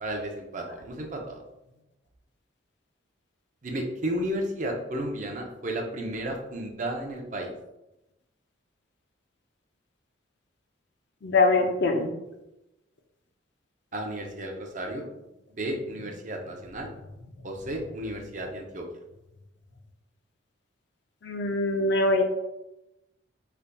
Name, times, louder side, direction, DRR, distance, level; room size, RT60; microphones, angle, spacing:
voice 1, 0.0-1.4 3.6-7.5 13.9-15.1 15.6-16.9 17.4-18.8, right 1 dB, 40° right, 2 dB, 0.5 m, -33 dB
voice 2, 11.2-12.1 21.2-22.2, left 3 dB, 55° left, 5 dB, 0.5 m, -23 dB
4.0 x 3.3 x 2.2 m, 0.93 s
head